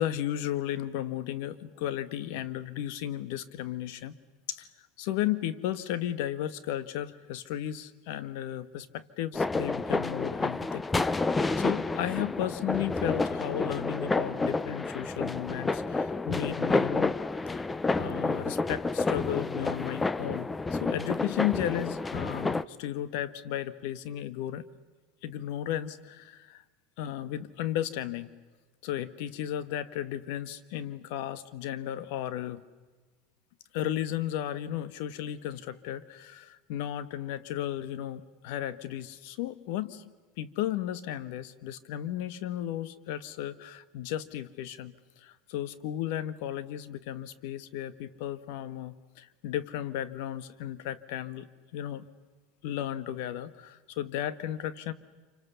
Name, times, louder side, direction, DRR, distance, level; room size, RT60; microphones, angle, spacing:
voice 1, 0.0-4.1 4.5-4.7 5.0-11.2 11.6-17.1 17.9-24.6 25.2-26.6 27.0-28.3 28.8-32.6 33.7-40.0 40.4-44.9 45.2-51.5 51.7-52.1 52.6-54.9, left 12 dB, 70° left, 14 dB, 1.4 m, -34 dB
sound 1, 9.3-22.6, left 3 dB, 15° left, 0.7 m, -30 dB
27.5 x 26.0 x 6.9 m, 1.3 s
supercardioid pair, 110°, 0 cm